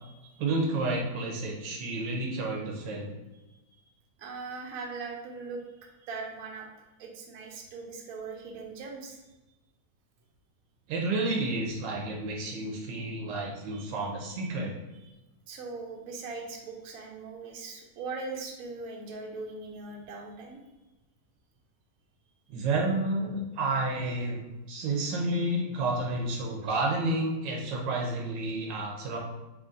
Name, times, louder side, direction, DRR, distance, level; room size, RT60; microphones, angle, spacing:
voice 1, 0.4-3.1 10.9-14.7 22.5-29.2, right 2 dB, 85° right, 0 dB, 1.4 m, -30 dB
voice 2, 4.2-5.6 6.0-9.2 13.7-14.1 15.5-20.6, right 4 dB, 70° right, 0 dB, 0.8 m, -40 dB
3.8 x 2.9 x 2.5 m, 1.1 s
omnidirectional pair, 2.0 m